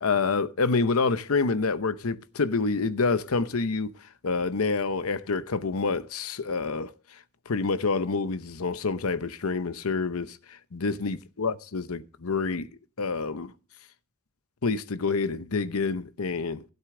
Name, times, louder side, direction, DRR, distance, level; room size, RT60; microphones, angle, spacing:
voice 1, 0.0-12.7 13.0-13.5 14.6-16.6, left 4 dB, 85° left, 0.8 m, -28 dB
16.0 x 8.1 x 3.8 m
head